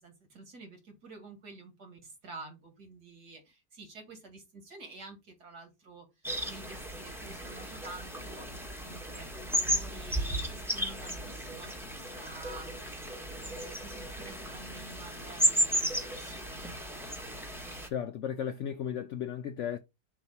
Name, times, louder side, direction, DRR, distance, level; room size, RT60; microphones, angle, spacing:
voice 1, 0.0-8.5 8.8-12.8 13.5-16.8, right 3 dB, 70° right, 2.8 m, -49 dB
sound 1, 6.2-17.9, equal, ahead, 1.3 m, -34 dB
voice 2, 17.9-19.8, left 9 dB, 70° left, 0.7 m, -35 dB
7.1 x 2.9 x 5.7 m
omnidirectional pair, 1.8 m